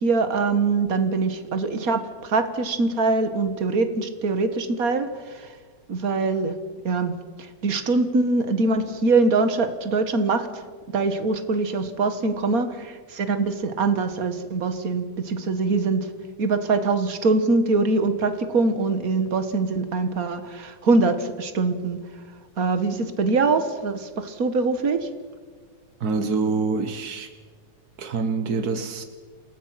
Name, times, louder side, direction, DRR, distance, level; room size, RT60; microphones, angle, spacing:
voice 1, 0.0-5.5 5.9-6.6 6.8-10.6 10.9-16.1 16.4-22.0 22.6-25.1, right 3 dB, 40° right, 9 dB, 1.3 m, -23 dB
voice 2, 26.0-27.3 28.0-29.0, right 4 dB, 70° right, 8 dB, 0.9 m, -26 dB
28.5 x 19.5 x 5.8 m, 1.5 s
omnidirectional pair, 3.5 m